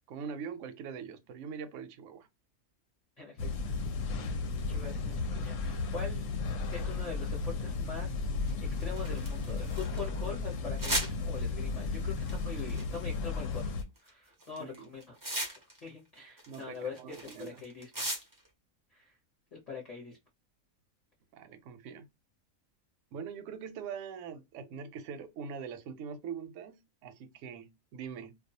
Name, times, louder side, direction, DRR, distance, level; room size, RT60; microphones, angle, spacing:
voice 1, 0.1-2.3 14.6-14.9 16.5-17.6 21.3-22.1 23.1-28.3, right 6 dB, 70° right, 0.8 m, -43 dB
sound 1, 3.4-13.8, left 3 dB, 70° left, 0.9 m, -34 dB
voice 2, 4.7-6.3 6.7-8.1 8.4-8.5 8.8-13.8 14.0-15.2 15.8-18.0 18.9-19.1 19.5-20.2, left 5 dB, 35° left, 0.6 m, -43 dB
sound 2, 8.5-10.0 10.8-11.1 12.2-13.0 13.8-14.1 14.4-15.9 16.1-18.5, right 1 dB, 30° right, 0.4 m, -37 dB
2.3 x 2.2 x 2.7 m
omnidirectional pair, 1.5 m